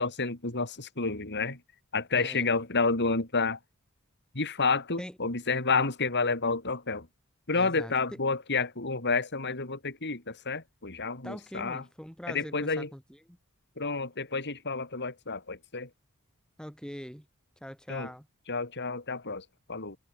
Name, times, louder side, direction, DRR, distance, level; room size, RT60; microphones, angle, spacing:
voice 1, 0.0-1.6 1.9-3.6 4.3-7.1 7.5-11.8 12.3-12.9 13.8-15.9 17.9-18.1 18.5-20.0, left 4 dB, 50° left, 4.4 m, -30 dB
voice 2, 2.1-2.5 5.0-5.1 7.5-7.9 11.2-13.4 16.6-17.2 17.6-18.3, equal, 5° left, 2.9 m, -42 dB
head